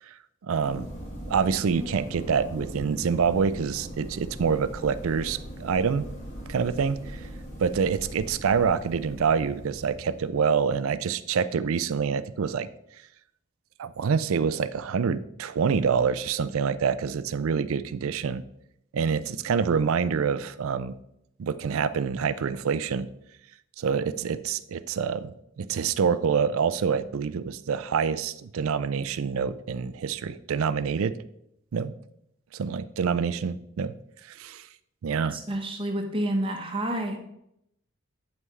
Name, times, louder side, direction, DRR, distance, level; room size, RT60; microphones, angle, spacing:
voice 1, 0.4-0.9 1.3-6.1 6.5-7.2 7.6-12.7 13.8-18.4 18.9-20.9 21.4-23.1 23.8-31.1 31.7-31.9 32.5-33.9 34.2-34.7 35.0-35.4, right 6 dB, 65° right, 15 dB, 0.4 m, -26 dB
sound 1, 0.6-10.3, equal, 35° left, 1.5 m, -40 dB
voice 2, 35.3-37.2, right 1 dB, 25° right, 3 dB, 0.9 m, -29 dB
8.2 x 5.5 x 3.1 m, 0.77 s
head